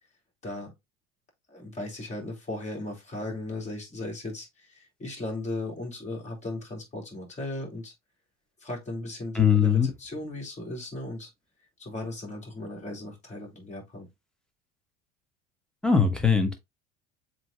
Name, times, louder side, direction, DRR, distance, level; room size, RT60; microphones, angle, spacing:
voice 1, 0.4-0.7 1.5-7.9 8.6-11.3 11.8-14.1, left 2 dB, 20° left, 2.9 m, -37 dB
voice 2, 9.3-9.9 15.8-16.5, left 6 dB, ahead, 1.3 m, -21 dB
7.5 x 3.0 x 2.4 m
hypercardioid pair, 75°, 31 cm